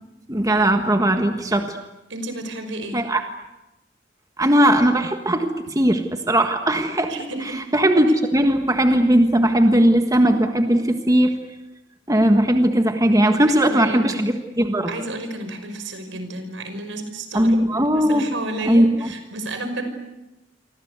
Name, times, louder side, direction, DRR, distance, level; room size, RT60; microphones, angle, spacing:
voice 1, 0.3-1.8 2.9-3.2 4.4-7.1 7.7-11.3 12.1-14.9 17.3-18.2 18.7-18.9, right 1 dB, 20° right, 5 dB, 1.6 m, -18 dB
voice 2, 2.1-3.0 7.1-7.7 13.5-14.1 14.9-17.6 17.9-19.9, right 2 dB, 75° right, 9 dB, 5.5 m, -31 dB
28.5 x 24.5 x 8.3 m, 0.99 s
head